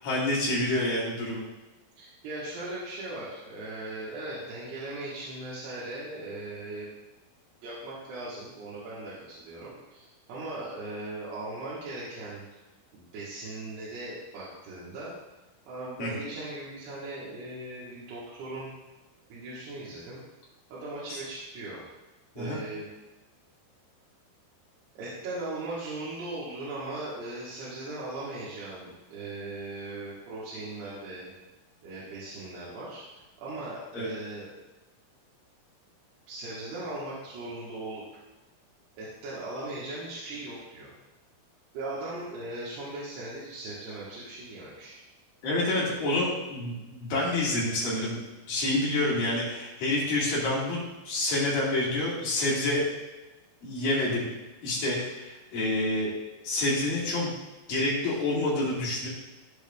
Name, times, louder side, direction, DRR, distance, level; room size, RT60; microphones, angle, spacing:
voice 1, 0.0-1.4 16.0-16.3 21.1-21.2 22.3-22.6 33.9-34.1 45.4-48.2 48.5-50.8 51.1-52.8 53.6-54.3 54.6-56.1 56.4-57.3 57.7-59.1, left 2 dB, 60° left, -5 dB, 3.7 m, -28 dB
voice 2, 2.0-6.9 7.6-12.4 12.9-15.1 15.7-18.7 19.3-20.2 20.7-21.8 22.4-22.9 25.0-31.3 31.8-33.0 33.4-34.5 36.3-38.0 39.0-40.9 41.7-45.0, right 2 dB, 90° right, -9 dB, 3.6 m, -38 dB
15.0 x 5.2 x 2.5 m, 1.1 s
omnidirectional pair, 4.6 m